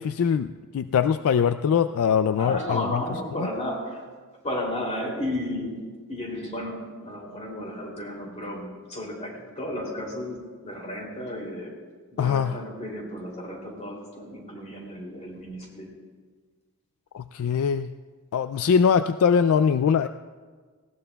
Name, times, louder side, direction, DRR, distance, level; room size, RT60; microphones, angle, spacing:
voice 1, 0.0-3.0 3.4-3.5 12.2-12.6 17.1-17.9 18.3-20.1, left 7 dB, 65° left, 11 dB, 0.3 m, -22 dB
voice 2, 2.4-4.0 4.4-11.8 12.1-15.9, left 1 dB, 30° left, -1 dB, 2.8 m, -33 dB
19.0 x 16.5 x 2.3 m, 1.5 s
head